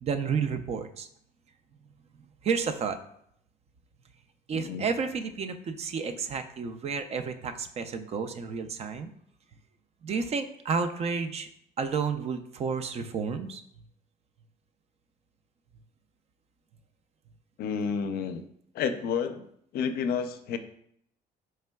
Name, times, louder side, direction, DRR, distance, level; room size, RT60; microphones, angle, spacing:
voice 1, 0.0-1.1 2.4-3.0 4.5-9.1 10.0-11.5 11.8-13.6, right 5 dB, 40° right, 9 dB, 0.4 m, -31 dB
voice 2, 4.5-4.9 17.6-18.4 18.7-19.4 19.7-20.6, left 6 dB, 65° left, 9 dB, 0.4 m, -30 dB
4.4 x 3.2 x 2.2 m, 0.70 s
cardioid pair, 110°, 17 cm